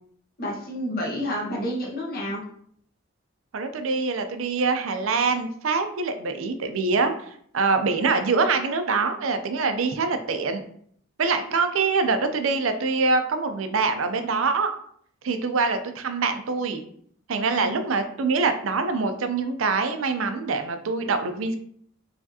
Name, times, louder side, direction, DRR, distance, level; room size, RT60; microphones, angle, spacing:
voice 1, 0.4-2.4 17.6-17.8, equal, 50° left, -4 dB, 1.5 m, -29 dB
voice 2, 3.5-10.6 11.2-14.7 15.2-16.8 17.3-21.6, right 4 dB, 75° right, 8 dB, 0.5 m, -24 dB
4.7 x 3.4 x 2.8 m, 0.64 s
head